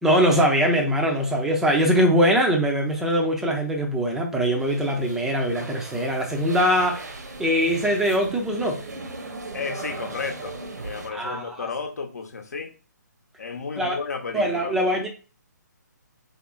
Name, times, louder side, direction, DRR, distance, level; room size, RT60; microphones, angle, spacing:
voice 1, 0.0-7.1 7.4-8.8 11.1-11.7 13.8-14.0 14.3-15.1, equal, 5° right, 0.5 m, -22 dB
sound 1, 4.6-11.1, right 3 dB, 65° right, 0.8 m, -37 dB
voice 2, 9.5-12.7 13.4-14.7, left 5 dB, 60° left, 0.9 m, -33 dB
3.7 x 2.0 x 3.8 m
figure-of-eight pair, 140°, 10 cm